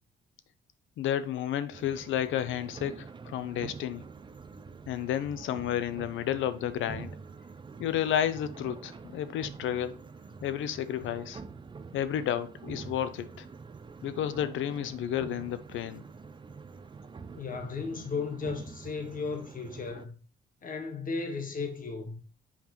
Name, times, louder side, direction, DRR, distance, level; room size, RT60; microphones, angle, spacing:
voice 1, 1.0-4.0 4.9-7.1 7.8-10.0 10.4-11.4 11.9-13.5 14.0-16.0, left 10 dB, 80° left, 0.7 m, -31 dB
sound 1, 1.7-20.0, right 5 dB, 25° right, 0.5 m, -46 dB
voice 2, 17.4-20.1 20.6-22.2, left 4 dB, 45° left, 1.5 m, -35 dB
7.2 x 5.3 x 3.0 m
cardioid pair, 90°, 20 cm